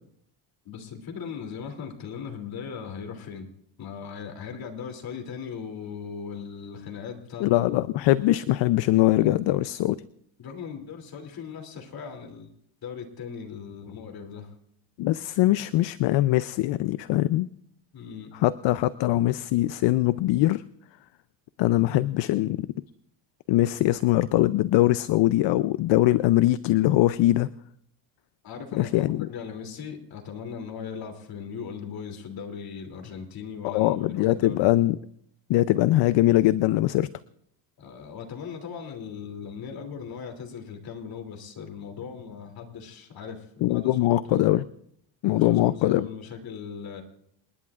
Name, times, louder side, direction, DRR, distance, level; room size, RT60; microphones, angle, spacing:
voice 1, 0.6-3.5 3.8-7.7 10.4-12.6 12.8-14.5 17.9-18.3 28.4-34.7 37.8-44.4 45.3-47.0, left 6 dB, 50° left, 4 dB, 2.9 m, -38 dB
voice 2, 7.4-10.0 15.0-17.5 18.4-20.6 21.6-22.7 23.5-27.5 28.8-29.3 33.6-35.0 35.5-37.1 43.6-44.6 45.2-46.1, left 16 dB, 65° left, 15 dB, 0.6 m, -22 dB
28.5 x 11.0 x 2.4 m, 0.70 s
cardioid pair, 115°, 47 cm